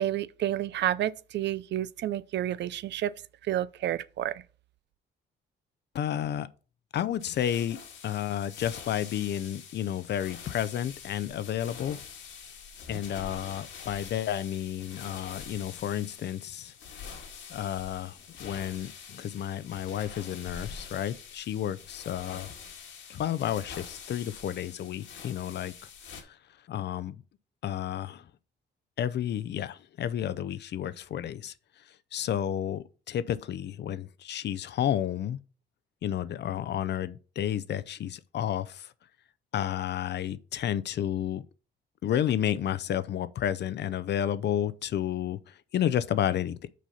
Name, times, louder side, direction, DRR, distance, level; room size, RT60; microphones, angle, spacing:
voice 1, 0.0-3.1 3.5-4.4, right 12 dB, 60° right, 0.4 m, -30 dB
voice 2, 5.9-6.5 6.9-12.0 12.9-16.7 17.5-22.5 23.1-25.7 26.2-26.4 26.7-27.2 27.6-28.3 29.0-31.5 32.1-35.4 36.0-38.9 39.5-41.4 42.0-46.7, left 10 dB, 60° left, 0.6 m, -31 dB
sound 1, 7.2-26.2, left 6 dB, 75° left, 1.7 m, -45 dB
6.2 x 4.1 x 5.6 m
cardioid pair, 90°, 20 cm